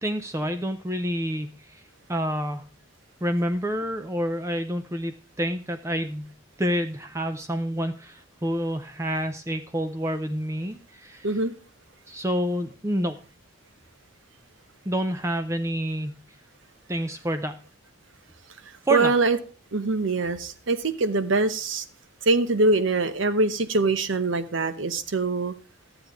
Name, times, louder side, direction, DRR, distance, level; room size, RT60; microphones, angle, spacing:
voice 1, 0.0-1.8 2.1-2.7 3.2-6.3 6.6-11.3 12.1-13.2 14.9-16.2 16.9-17.6 18.9-19.1, equal, 15° right, 8 dB, 0.5 m, -28 dB
voice 2, 18.9-19.4 19.7-21.8 22.3-25.5, right 3 dB, 65° right, 11 dB, 0.8 m, -23 dB
13.0 x 8.0 x 3.5 m, 0.36 s
head